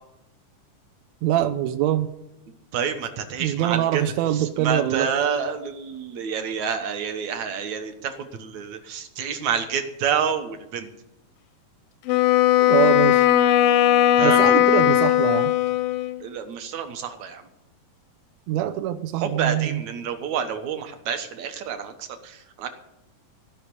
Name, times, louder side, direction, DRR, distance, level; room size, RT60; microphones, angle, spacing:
voice 1, 1.2-2.1 3.4-5.1 12.6-13.3 14.2-15.5 18.5-19.8, right 12 dB, 80° right, 9 dB, 1.6 m, -24 dB
voice 2, 2.7-4.0 4.4-10.9 14.2-14.6 16.2-17.4 19.2-22.7, right 7 dB, 65° right, 7 dB, 2.3 m, -28 dB
Wind instrument woodwind instrument, 12.1-16.2, left 13 dB, 90° left, 2.4 m, -18 dB
17.0 x 5.9 x 9.8 m, 0.86 s
omnidirectional pair, 3.8 m